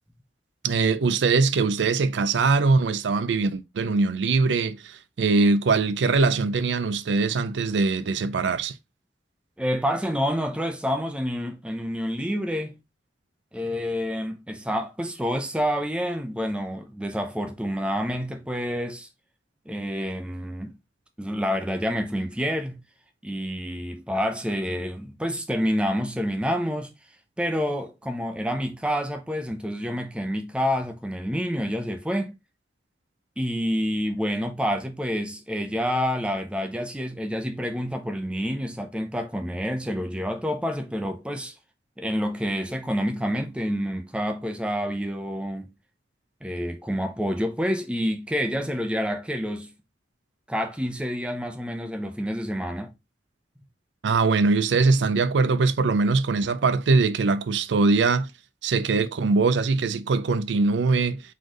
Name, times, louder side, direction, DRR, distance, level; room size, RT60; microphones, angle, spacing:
voice 1, 0.6-8.7 54.0-58.3 58.6-61.2, right 4 dB, 70° right, 0.4 m, -22 dB
voice 2, 9.6-12.8 13.5-19.1 19.7-20.8 21.2-22.8 23.2-26.9 27.4-32.3 33.4-41.5 42.0-45.7 46.4-49.7 50.5-52.9, equal, 5° right, 0.6 m, -28 dB
4.1 x 3.2 x 3.7 m
head